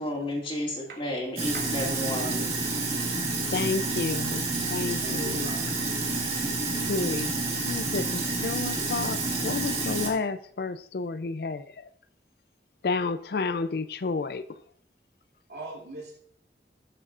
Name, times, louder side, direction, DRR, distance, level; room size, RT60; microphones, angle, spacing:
voice 1, 0.0-2.3, left 1 dB, 30° left, 2.1 m, -32 dB
Sink (filling or washing), 1.4-10.1, right 3 dB, 35° right, 1.9 m, -29 dB
voice 2, 2.1-3.0 5.0-5.8 15.5-16.2, right 2 dB, 75° right, 2.8 m, -41 dB
voice 3, 3.5-4.5 4.7-5.5 6.9-7.3 7.7-9.2 9.4-11.6 12.8-14.4, left 4 dB, 60° left, 0.4 m, -30 dB
17.0 x 6.7 x 2.5 m
head